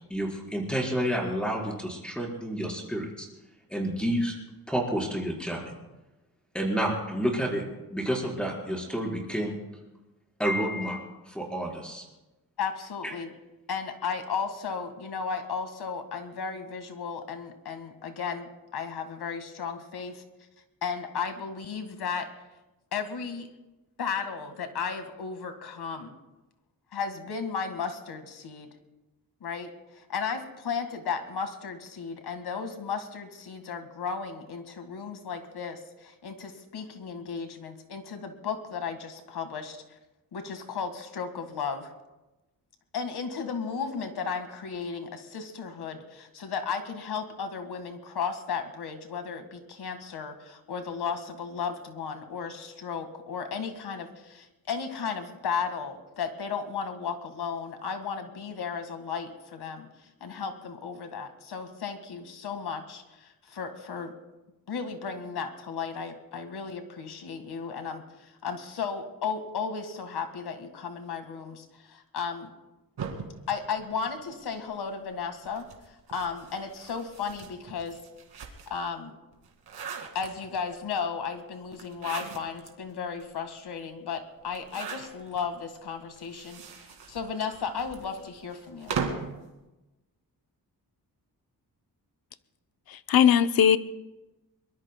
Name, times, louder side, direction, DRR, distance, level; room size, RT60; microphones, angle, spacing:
voice 1, 0.1-3.3 3.7-4.3 4.7-5.6 6.5-7.6 7.9-9.5 10.4-11.0 11.3-12.0, equal, 5° left, 4.4 m, -29 dB
voice 2, 12.6-13.3 13.7-20.2 20.8-22.3 22.9-23.5 24.0-26.1 26.9-28.7 29.4-39.8 40.3-41.9 42.9-64.1 64.7-72.5 73.5-78.0 78.7-79.2 80.1-89.0, left 6 dB, 85° left, 1.8 m, -34 dB
sound 1, 73.0-74.6 75.4-78.9 79.3-80.7 81.7-82.7 83.2-83.3 83.5-83.6 84.5-85.4 86.2-89.4, right 6 dB, 90° right, 2.2 m, -39 dB
voice 3, 92.9-93.8, left 9 dB, 65° left, 0.7 m, -20 dB
23.5 x 22.0 x 2.2 m
wide cardioid pair, 145°, 38 cm